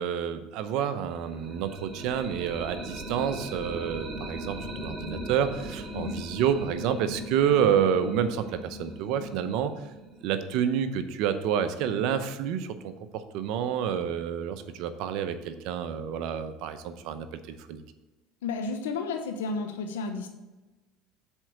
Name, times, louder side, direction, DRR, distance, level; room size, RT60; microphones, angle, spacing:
voice 1, 0.0-9.7 10.2-17.8, right 8 dB, 65° right, 10 dB, 0.7 m, -29 dB
sound 1, 1.1-10.8, right 1 dB, 15° right, 1.8 m, -39 dB
voice 2, 18.4-20.3, left 4 dB, 90° left, 5 dB, 0.7 m, -32 dB
7.3 x 4.6 x 6.4 m, 1.1 s
hypercardioid pair, 85°, 0 cm